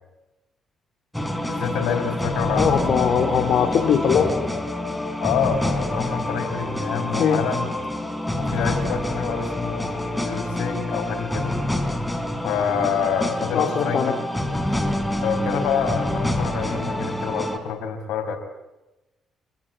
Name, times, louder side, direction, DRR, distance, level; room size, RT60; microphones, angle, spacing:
sound 1, 1.1-17.6, left 1 dB, 5° left, 4.2 m, -27 dB
voice 1, 1.5-3.2 5.2-7.7 8.4-11.6 12.4-14.2 15.2-18.4, left 7 dB, 90° left, 6 dB, 5.3 m, -27 dB
voice 2, 2.6-4.6 7.2-7.4 13.5-14.1, left 7 dB, 65° left, 2 dB, 3.4 m, -21 dB
27.5 x 22.0 x 9.2 m, 1.0 s
cardioid pair, 90°, 0 cm